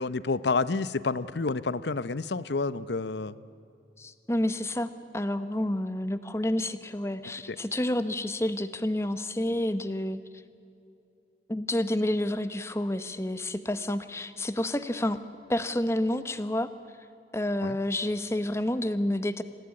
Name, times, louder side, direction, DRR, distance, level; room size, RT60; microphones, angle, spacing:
voice 1, 0.0-3.4 7.5-7.6 17.6-17.8, left 3 dB, 75° left, 16 dB, 0.7 m, -29 dB
voice 2, 4.0-10.2 11.5-15.2 15.5-16.7 17.3-19.4, left 1 dB, 15° left, 11 dB, 0.9 m, -29 dB
27.0 x 17.0 x 9.8 m, 2.7 s
head